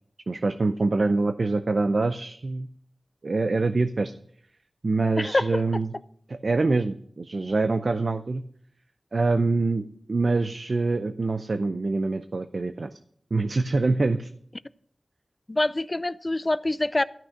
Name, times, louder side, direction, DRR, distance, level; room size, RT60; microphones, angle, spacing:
voice 1, 0.3-2.7 3.2-4.1 4.8-5.9 6.3-8.4 9.1-9.8 10.1-12.9 13.3-14.3, right 3 dB, 60° right, 10 dB, 0.5 m, -25 dB
voice 2, 5.2-5.6 15.5-17.0, left 2 dB, 30° left, 16 dB, 0.4 m, -25 dB
13.5 x 6.1 x 6.4 m, 0.65 s
wide cardioid pair, 85°, 0 cm